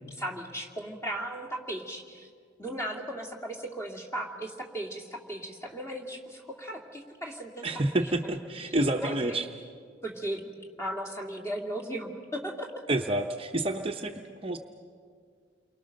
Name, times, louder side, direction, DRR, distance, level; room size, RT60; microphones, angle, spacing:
voice 1, 0.1-2.3 2.6-7.7 7.9-8.4 8.7-9.4 10.0-10.4 10.8-12.8, right 1 dB, 15° left, 1 dB, 2.3 m, -37 dB
voice 2, 7.6-9.5 12.9-14.6, right 1 dB, 30° right, 3 dB, 0.8 m, -29 dB
29.0 x 23.0 x 6.5 m, 2.1 s
head